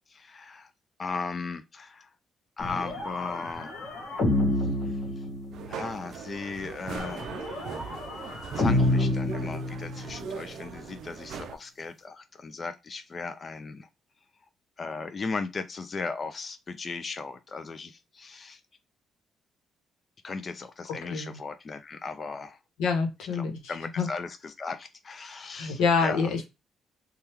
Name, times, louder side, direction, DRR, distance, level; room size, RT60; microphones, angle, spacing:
voice 1, 0.1-0.7 1.0-2.1 2.6-3.8 4.3-5.2 5.7-7.4 8.6-13.9 14.8-18.6 20.2-22.6 23.3-26.3, left 4 dB, 40° left, 0.4 m, -37 dB
sound 1, 2.6-5.8 7.0-10.2, left 2 dB, 70° left, 1.2 m, -29 dB
sound 2, 5.5-11.6, right 6 dB, 75° right, 0.4 m, -40 dB
voice 2, 22.8-23.5 24.0-24.1 25.5-26.4, left 5 dB, 90° left, 0.9 m, -26 dB
3.3 x 2.3 x 2.8 m
cardioid pair, 90°, 0 cm